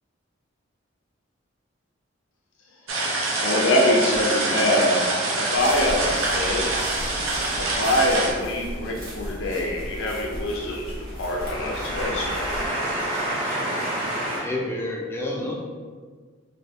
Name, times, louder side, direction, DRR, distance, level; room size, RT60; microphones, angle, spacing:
sound 1, 2.9-8.3, right 2 dB, 85° right, 0.6 m, -25 dB
voice 1, 3.4-5.0 5.3-6.8 7.5-12.4, left 1 dB, 80° left, -1 dB, 0.5 m, -24 dB
sound 2, 5.5-12.7, equal, 55° right, 1.0 m, -36 dB
voice 2, 11.1-14.4, right 1 dB, 25° right, -14 dB, 1.0 m, -28 dB
voice 3, 14.3-15.5, left 1 dB, 10° left, -3 dB, 0.4 m, -29 dB
3.3 x 2.7 x 2.6 m, 1.5 s
head